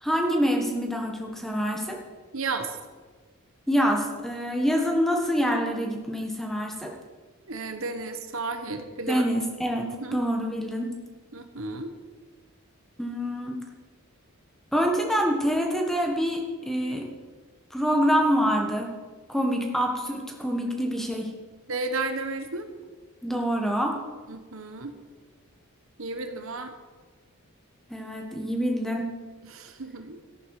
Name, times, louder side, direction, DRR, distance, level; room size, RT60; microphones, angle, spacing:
voice 1, 0.0-2.0 3.7-6.9 9.1-10.9 13.0-13.6 14.7-17.1 17.7-18.9 19.3-21.3 23.2-24.0 27.9-29.1, equal, ahead, 1 dB, 1.5 m, -26 dB
voice 2, 2.3-2.8 7.5-9.2 10.0-10.2 11.3-11.9 21.7-22.7 24.3-25.0 26.0-26.7 29.5-30.2, right 3 dB, 70° right, 7 dB, 1.2 m, -33 dB
14.0 x 11.0 x 4.9 m, 1.4 s
head